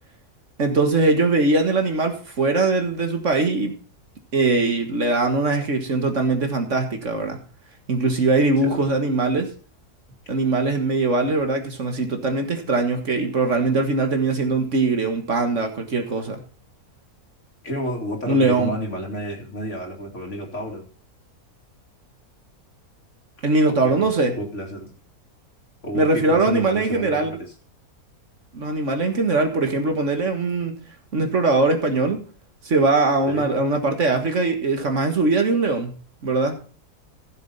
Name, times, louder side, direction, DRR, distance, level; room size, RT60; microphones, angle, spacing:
voice 1, 0.6-3.8 4.3-7.4 7.9-9.5 10.3-16.4 18.3-18.7 23.4-24.4 25.9-27.4 28.5-30.8 31.1-32.3 32.6-36.6, right 3 dB, 55° right, 1.8 m, -21 dB
voice 2, 17.6-20.9 23.6-24.9 25.8-27.4 33.3-33.5, equal, 50° left, 2.8 m, -31 dB
15.5 x 7.2 x 4.1 m
omnidirectional pair, 1.6 m